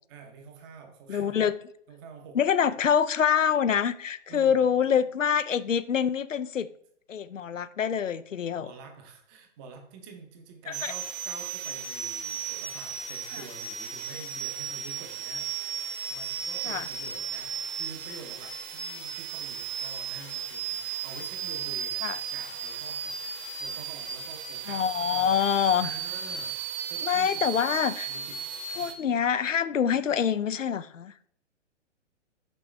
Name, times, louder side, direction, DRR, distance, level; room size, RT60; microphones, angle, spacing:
voice 1, 0.1-1.3 1.9-2.4 4.3-4.9 8.5-25.5 25.8-27.4 28.1-28.5 28.7-28.9, right 4 dB, 20° right, 4 dB, 0.6 m, -47 dB
voice 2, 1.1-1.6 2.4-6.7 7.1-8.7 10.7-10.9 16.7-16.8 22.0-22.2 24.7-25.9 27.1-28.1 28.8-31.3, left 8 dB, 90° left, 13 dB, 0.5 m, -26 dB
sound 1, 10.7-28.9, right 7 dB, 40° right, 1.1 m, -35 dB
6.4 x 5.2 x 3.1 m, 0.66 s
figure-of-eight pair, 130°, 37 cm